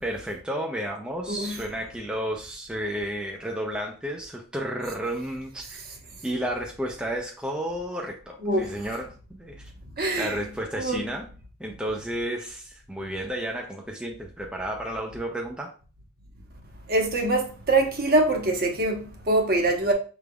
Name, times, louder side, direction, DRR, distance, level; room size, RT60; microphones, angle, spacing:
voice 1, 0.0-5.8 6.2-9.7 10.2-11.3 11.6-15.7, right 1 dB, 5° right, 0.5 m, -32 dB
voice 2, 8.4-9.0 10.0-10.5 10.8-11.1 16.9-19.9, right 2 dB, 45° right, 1.0 m, -24 dB
6.1 x 3.4 x 2.3 m
head